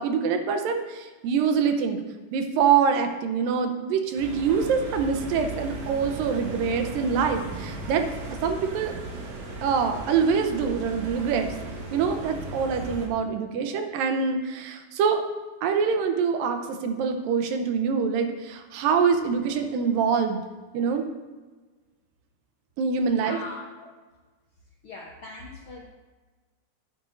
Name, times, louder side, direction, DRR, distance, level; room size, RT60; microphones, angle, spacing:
voice 1, 0.0-2.0 2.3-8.1 8.4-8.9 9.6-11.5 11.9-15.2 15.6-20.4 20.7-21.0 22.8-23.4, right 6 dB, 90° right, 6 dB, 2.6 m, -25 dB
sound 1, 4.2-13.1, right 3 dB, 60° right, 2.5 m, -37 dB
voice 2, 23.0-23.9 24.8-25.8, left 3 dB, 80° left, -2 dB, 1.2 m, -41 dB
12.0 x 9.6 x 2.6 m, 1.3 s
omnidirectional pair, 3.9 m